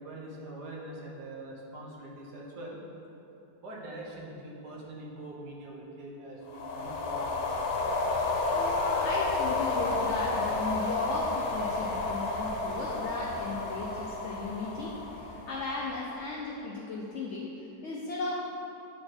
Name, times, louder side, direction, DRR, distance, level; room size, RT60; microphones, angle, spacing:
voice 1, 0.0-2.8 3.6-7.4, right 1 dB, 75° right, -3 dB, 1.7 m, -43 dB
sound 1, 6.5-16.0, left 3 dB, 90° left, 1.4 m, -31 dB
voice 2, 8.5-18.4, left 3 dB, 60° left, -2 dB, 0.8 m, -36 dB
9.5 x 4.4 x 4.3 m, 2.9 s
omnidirectional pair, 1.8 m